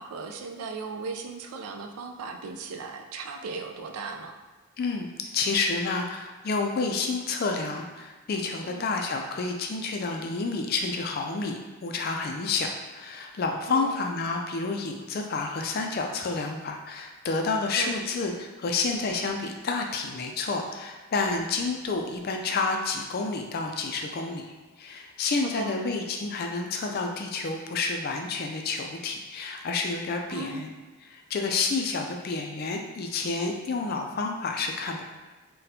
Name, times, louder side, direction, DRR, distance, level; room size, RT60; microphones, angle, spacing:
voice 1, 0.0-4.3 8.6-9.0 13.7-14.0 17.8-18.0 25.4-25.8 30.3-30.7, right 4 dB, 90° right, 4 dB, 0.4 m, -37 dB
voice 2, 4.8-30.7 31.1-35.0, left 4 dB, 45° left, 3 dB, 0.3 m, -29 dB
4.1 x 2.2 x 2.7 m, 1.2 s
head